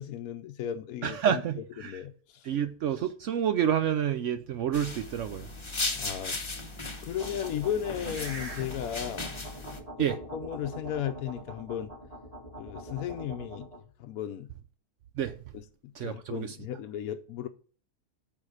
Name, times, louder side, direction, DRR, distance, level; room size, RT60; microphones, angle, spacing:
voice 1, 0.0-1.4 1.8-2.5 6.0-6.4 7.0-9.3 10.0-11.9 12.6-13.7 14.0-14.5 15.5-17.5, left 10 dB, 70° left, 1.0 m, -35 dB
voice 2, 1.0-2.0 2.4-5.5 10.0-10.2 15.2-15.3 16.0-16.5, right 9 dB, 65° right, 0.8 m, -29 dB
sound 1, 4.7-9.8, left 2 dB, 25° left, 0.8 m, -37 dB
sound 2, 7.2-13.8, right 1 dB, 20° right, 2.3 m, -43 dB
9.0 x 3.9 x 6.2 m
omnidirectional pair, 1.7 m